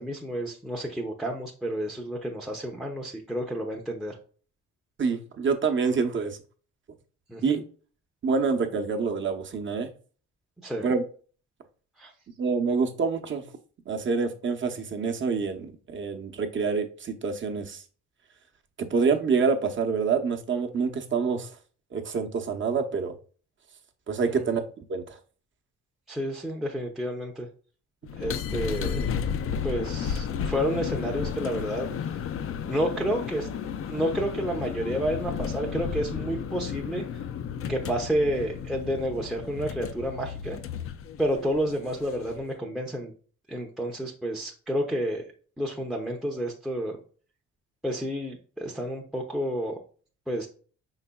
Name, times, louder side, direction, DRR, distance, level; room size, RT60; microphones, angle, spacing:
voice 1, 0.0-4.2 7.3-7.6 10.6-10.9 12.0-12.1 24.3-24.5 26.1-27.5 28.2-29.1 29.6-31.9 32.6-33.5 33.9-37.0 37.7-40.6 41.2-43.1 43.5-45.2 45.6-47.0 47.8-49.7 50.3-50.5, equal, ahead, 0.6 m, -30 dB
voice 2, 5.0-6.4 7.4-7.6 8.2-9.9 10.8-11.0 12.4-13.4 13.9-17.8 18.8-21.5 21.9-23.1 24.1-25.2, right 5 dB, 40° right, 0.8 m, -27 dB
sound 1, 28.0-42.5, left 7 dB, 50° left, 0.5 m, -33 dB
5.3 x 4.0 x 2.2 m
cardioid pair, 90°, 30 cm